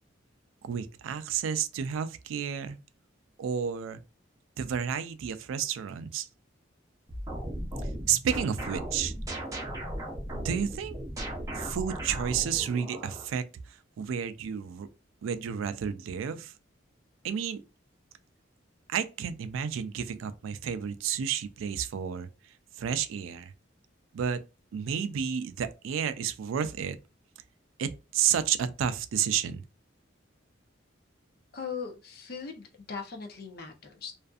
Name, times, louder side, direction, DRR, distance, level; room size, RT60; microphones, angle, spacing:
voice 1, 0.6-2.8 3.4-4.0 4.6-6.3 7.8-9.1 10.3-11.0 11.5-14.9 15.2-16.5 17.2-17.6 18.9-22.3 22.8-23.5 24.1-24.4 24.7-27.0 27.8-29.6, right 8 dB, 90° right, 0.3 m, -31 dB
sound 1, 7.1-13.3, right 1 dB, 15° right, 0.6 m, -37 dB
voice 2, 31.5-34.1, left 5 dB, 50° left, 0.6 m, -39 dB
2.5 x 2.4 x 2.3 m
head